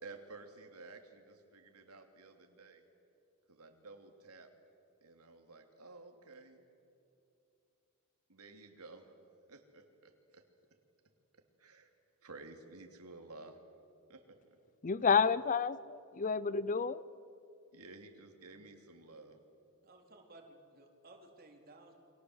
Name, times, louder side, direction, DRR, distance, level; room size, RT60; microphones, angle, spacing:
voice 1, 0.0-2.8 3.5-4.5 5.0-6.6 8.3-9.1 9.5-10.4 11.6-11.9 12.2-13.6 14.1-14.6 17.7-19.4, right 3 dB, 80° right, 5 dB, 3.0 m, -53 dB
voice 2, 14.8-17.0, left 6 dB, 35° left, 18 dB, 0.5 m, -30 dB
voice 3, 19.8-21.9, right 2 dB, 45° right, 2 dB, 3.9 m, -57 dB
29.5 x 24.0 x 8.0 m, 2.8 s
head